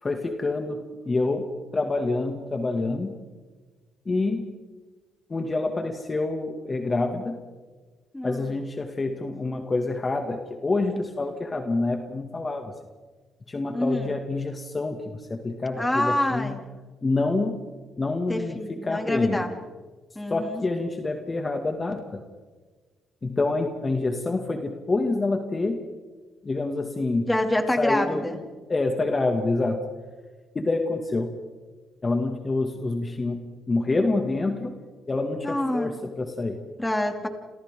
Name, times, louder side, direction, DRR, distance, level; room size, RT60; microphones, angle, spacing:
voice 1, 0.0-3.2 4.1-4.5 5.3-7.4 8.2-12.7 13.5-16.6 17.0-17.5 18.0-19.4 20.3-22.2 23.2-25.9 26.4-27.3 27.8-28.4 28.7-29.9 30.5-31.4 32.0-34.7 35.1-36.6, left 3 dB, 30° left, 4 dB, 2.3 m, -27 dB
voice 2, 8.1-8.5 13.7-14.1 15.8-16.6 18.3-19.5 20.1-20.6 27.3-28.4 35.4-35.9 36.8-37.3, left 1 dB, 10° left, 5 dB, 2.8 m, -26 dB
29.0 x 28.5 x 3.9 m, 1.4 s
cardioid pair, 90°, 0 cm